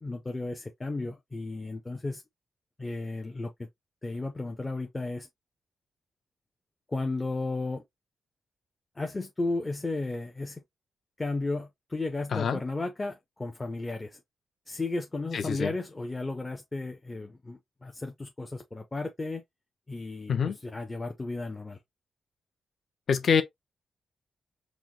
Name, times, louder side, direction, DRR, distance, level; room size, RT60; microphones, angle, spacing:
voice 1, 0.0-2.2 2.8-3.7 4.0-5.3 6.9-7.8 9.0-10.6 11.2-14.2 14.7-19.4 19.9-20.3 20.6-21.8, left 2 dB, 15° left, 0.6 m, -34 dB
voice 2, 12.3-12.6 15.3-15.7 20.3-20.6 23.1-23.4, left 6 dB, 50° left, 0.7 m, -25 dB
4.6 x 2.1 x 3.8 m
wide cardioid pair, 140°, 0 cm